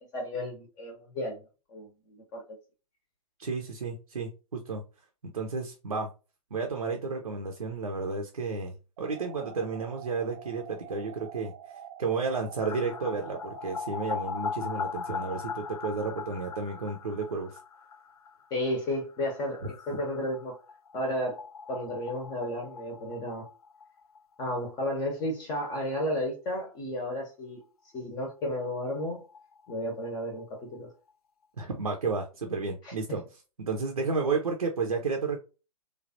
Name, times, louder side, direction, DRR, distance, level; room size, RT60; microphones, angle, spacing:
voice 1, 0.1-1.4 1.7-2.6 18.5-20.5 20.9-21.4 21.7-23.4 24.4-27.6 27.9-29.2 29.7-30.9 32.8-32.9, left 1 dB, 20° left, 0.7 m, -33 dB
voice 2, 3.4-4.8 5.3-6.1 6.5-11.5 12.0-17.6 19.9-20.0 31.6-35.4, right 4 dB, 70° right, 0.6 m, -32 dB
sound 1, 9.0-14.0, right 9 dB, 30° right, 0.3 m, -47 dB
sound 2, 12.6-24.2 24.5-24.6 24.8-24.9 28.0-28.1 28.3-28.4 28.7-30.4 30.7-30.8, left 5 dB, 70° left, 0.4 m, -40 dB
3.2 x 2.3 x 2.6 m
figure-of-eight pair, 115°, 20 cm